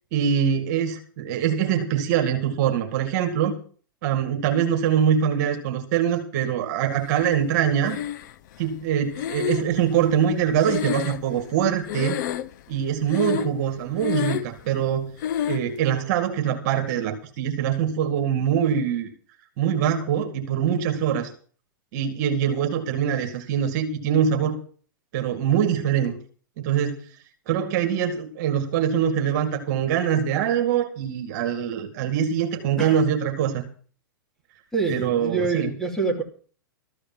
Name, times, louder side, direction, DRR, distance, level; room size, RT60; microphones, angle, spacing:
voice 1, 0.1-3.6 4.0-8.0 8.6-12.2 12.7-15.1 15.5-19.1 19.6-21.3 21.9-24.6 25.1-26.1 26.6-27.0 27.5-33.7 34.9-35.7, right 8 dB, 50° right, 5 dB, 2.3 m, -23 dB
Breathing, 7.9-8.6 9.1-11.6 11.9-12.7 13.1-13.7 13.9-14.6 15.2-15.7, left 10 dB, 55° left, 0.8 m, -28 dB
voice 2, 34.7-36.2, right 4 dB, ahead, 0 dB, 3.0 m, -26 dB
14.0 x 5.0 x 9.2 m, 0.43 s
hypercardioid pair, 115°, 12 cm